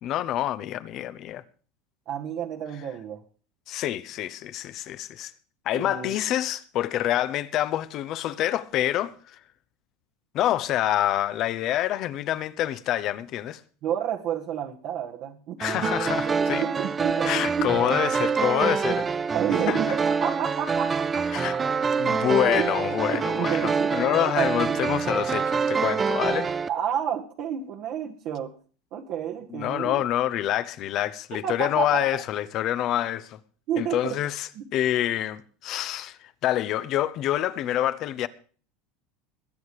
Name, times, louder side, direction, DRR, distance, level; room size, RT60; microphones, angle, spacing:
voice 1, 0.0-1.4 3.7-5.3 5.6-9.4 10.3-13.6 15.6-16.7 17.2-19.1 19.5-20.0 21.3-21.6 22.0-26.5 29.5-33.4 33.8-38.3, left 12 dB, 50° left, 1.1 m, -27 dB
voice 2, 2.1-3.2 5.7-6.2 13.8-17.8 18.9-19.0 19.3-21.6 22.5-22.7 23.1-24.8 26.4-28.5 28.9-30.0 31.3-32.2 33.7-34.2 34.5-34.6, right 9 dB, 55° right, 1.6 m, -31 dB
sound 1, 15.6-26.7, right 5 dB, 20° right, 0.6 m, -26 dB
21.0 x 8.1 x 4.9 m
supercardioid pair, 120°, 0 cm